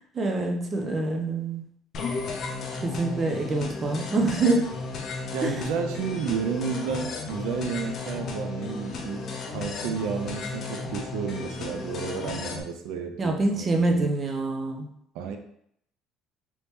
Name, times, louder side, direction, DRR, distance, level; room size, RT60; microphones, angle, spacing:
voice 1, 0.1-1.6 2.8-4.8 5.4-5.6 13.2-14.9, right 2 dB, 20° right, 2 dB, 0.4 m, -26 dB
sound 1, 1.9-12.6, left 3 dB, 40° left, 0.5 m, -34 dB
voice 2, 5.3-14.1 15.1-15.4, right 6 dB, 75° right, 6 dB, 0.5 m, -32 dB
3.0 x 2.7 x 3.4 m, 0.71 s
cardioid pair, 165°, 0 cm